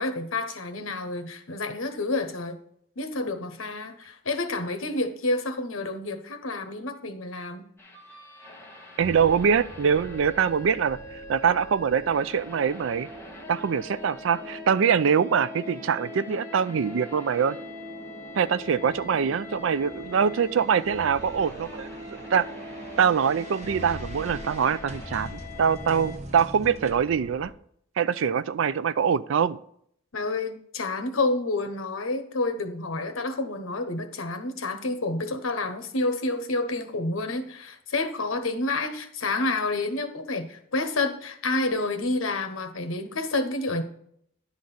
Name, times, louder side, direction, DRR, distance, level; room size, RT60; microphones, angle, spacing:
voice 1, 0.0-2.6 3.0-7.6 30.1-43.8, left 2 dB, 85° left, 8 dB, 1.1 m, -29 dB
sound 1, 7.8-26.2, left 3 dB, 15° left, 1.4 m, -44 dB
sound 2, 9.0-27.5, equal, 35° right, 1.1 m, -42 dB
voice 2, 9.0-13.1 13.5-17.6 18.3-21.9 22.3-22.5 23.0-27.5 28.0-29.6, right 7 dB, 65° right, 16 dB, 0.4 m, -24 dB
10.5 x 3.9 x 7.0 m, 0.68 s
head